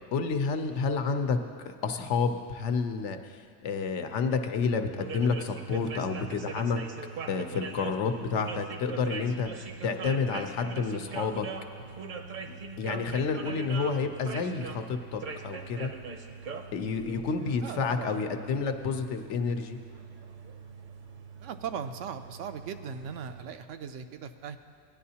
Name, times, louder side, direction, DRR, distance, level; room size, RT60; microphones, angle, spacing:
voice 1, 0.1-6.8 7.3-11.5 12.8-15.9 16.7-19.8, left 5 dB, 75° left, 6 dB, 1.0 m, -30 dB
sound 1, 5.0-23.5, right 5 dB, 50° right, 0.7 m, -41 dB
voice 2, 17.6-18.2 21.4-24.6, right 7 dB, 90° right, 8 dB, 0.9 m, -38 dB
18.0 x 10.0 x 2.8 m, 2.3 s
omnidirectional pair, 1.2 m